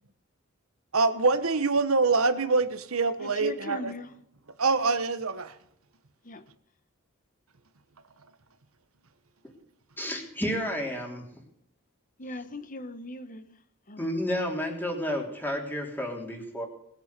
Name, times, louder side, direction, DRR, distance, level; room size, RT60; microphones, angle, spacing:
voice 1, 0.9-3.9 4.6-5.5, right 3 dB, 80° right, 1.2 m, -25 dB
voice 2, 3.2-4.2 6.2-6.4 12.2-14.1, left 2 dB, 40° left, 1.2 m, -40 dB
voice 3, 10.0-11.2 14.0-16.7, equal, 10° left, 3.5 m, -31 dB
20.0 x 8.2 x 6.8 m
head